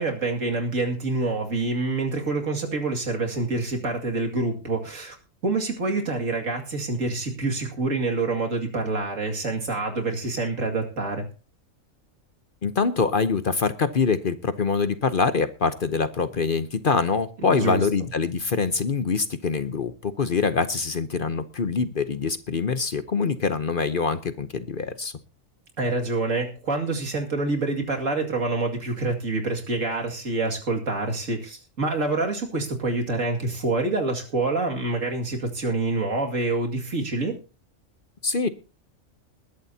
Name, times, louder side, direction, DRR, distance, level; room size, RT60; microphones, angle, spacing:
voice 1, 0.0-5.2 5.4-11.3 17.5-17.8 25.8-37.4, right 3 dB, 75° right, 2 dB, 2.7 m, -26 dB
voice 2, 12.6-25.1 38.2-38.5, left 5 dB, 45° left, 11 dB, 0.9 m, -24 dB
20.5 x 11.5 x 2.8 m, 0.32 s
omnidirectional pair, 1.4 m